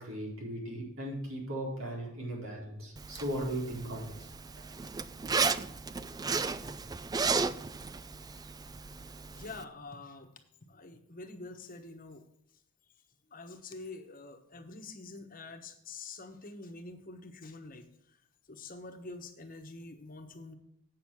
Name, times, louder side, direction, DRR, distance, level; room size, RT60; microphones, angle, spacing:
voice 1, 0.0-4.3, right 1 dB, 80° right, -3 dB, 4.3 m, -37 dB
Zipper (clothing), 3.0-9.6, right 4 dB, 20° right, 0.3 m, -34 dB
voice 2, 8.8-10.3 10.7-12.2 13.3-17.8 18.5-20.6, left 3 dB, 40° left, 5 dB, 1.1 m, -46 dB
8.6 x 6.5 x 7.2 m, 0.74 s
head